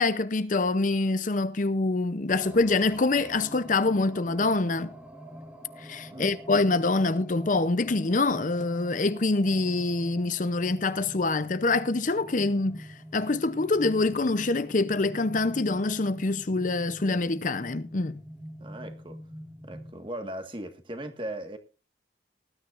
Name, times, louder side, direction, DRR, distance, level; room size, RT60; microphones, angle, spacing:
voice 1, 0.0-4.9 5.8-12.9 13.1-18.2, left 3 dB, 45° left, 0.7 m, -25 dB
sound 1, 2.3-19.9, equal, 5° right, 1.4 m, -45 dB
voice 2, 18.6-19.2 19.6-21.6, right 1 dB, 30° right, 1.6 m, -38 dB
19.0 x 12.5 x 2.5 m
head